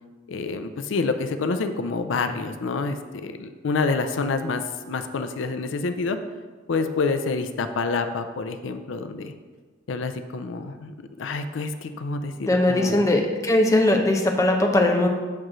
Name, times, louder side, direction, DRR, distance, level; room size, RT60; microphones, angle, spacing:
voice 1, 0.3-6.2 6.7-9.3 9.9-13.1, left 4 dB, 80° left, 8 dB, 0.5 m, -28 dB
voice 2, 12.4-15.1, left 1 dB, 15° left, 2 dB, 0.6 m, -20 dB
8.6 x 3.1 x 6.1 m, 1.4 s
head